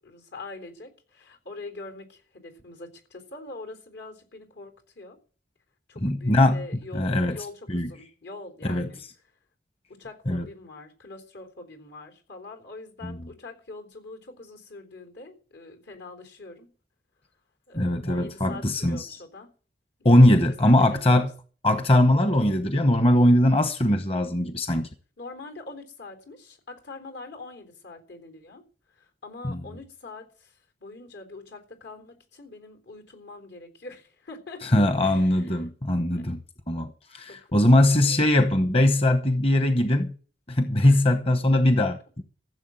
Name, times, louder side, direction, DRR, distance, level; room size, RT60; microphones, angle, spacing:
voice 1, 0.0-5.2 5.9-9.0 9.9-16.7 17.7-19.5 20.0-20.3 20.6-21.3 25.2-28.6 29.0-35.6 36.1-36.4 37.3-38.2 40.8-41.0 41.5-41.6, left 2 dB, 80° left, 3.8 m, -44 dB
voice 2, 6.0-6.6 6.9-7.9 8.6-8.9 10.3-10.5 13.0-13.2 17.7-19.2 20.0-21.3 21.6-24.9 29.4-29.6 34.6-36.4 36.7-40.1 40.5-42.2, left 1 dB, 35° left, 1.0 m, -21 dB
15.0 x 7.3 x 7.6 m
head